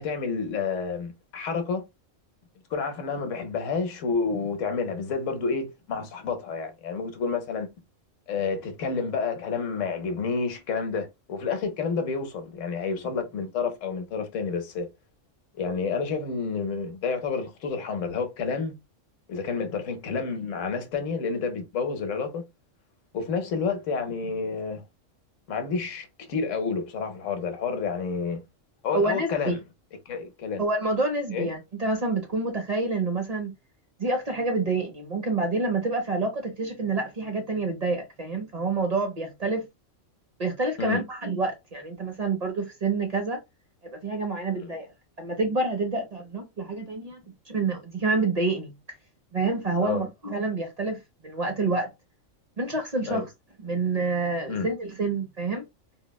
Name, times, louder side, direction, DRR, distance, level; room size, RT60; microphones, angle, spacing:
voice 1, 0.0-1.8 2.7-7.7 8.3-14.9 15.5-18.7 19.3-22.4 23.1-24.8 25.5-28.4 28.8-29.6 30.1-30.6 31.3-31.5 40.8-41.0 44.5-44.7 49.8-50.0 53.1-53.2 54.5-54.7, left 5 dB, 75° left, 1.1 m, -29 dB
voice 2, 28.9-29.5 30.6-33.5 34.0-39.6 40.4-43.4 43.8-44.9 45.2-47.2 47.5-48.7 49.3-51.9 52.6-53.2 53.6-55.6, right 3 dB, 45° right, 0.5 m, -28 dB
3.9 x 2.1 x 2.2 m
omnidirectional pair, 1.3 m